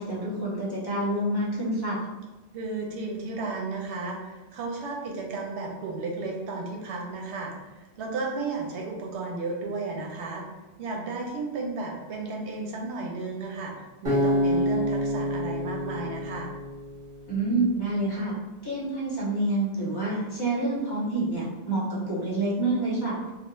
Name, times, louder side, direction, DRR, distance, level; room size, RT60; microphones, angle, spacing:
voice 1, 0.0-2.1 17.3-18.3 18.6-23.2, right 2 dB, 25° left, -6 dB, 0.6 m, -27 dB
voice 2, 2.5-10.4 10.8-16.5, right 3 dB, 85° right, 0 dB, 0.9 m, -33 dB
Acoustic guitar, 14.0-17.3, equal, 50° right, 1.1 m, -27 dB
2.4 x 2.0 x 3.0 m, 1.1 s
omnidirectional pair, 1.1 m